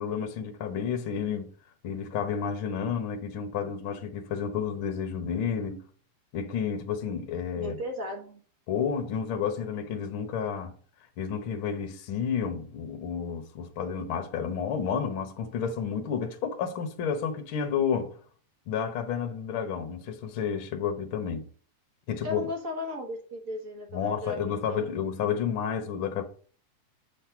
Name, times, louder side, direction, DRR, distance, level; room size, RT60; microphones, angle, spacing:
voice 1, 0.0-1.5 1.8-5.8 6.3-7.7 8.7-10.7 11.2-18.1 18.7-21.5 22.1-22.4 23.9-26.2, left 7 dB, 55° left, 1.4 m, -31 dB
voice 2, 7.6-8.4 22.2-24.9, left 2 dB, 75° right, 0.7 m, -36 dB
8.3 x 4.4 x 5.8 m
omnidirectional pair, 3.8 m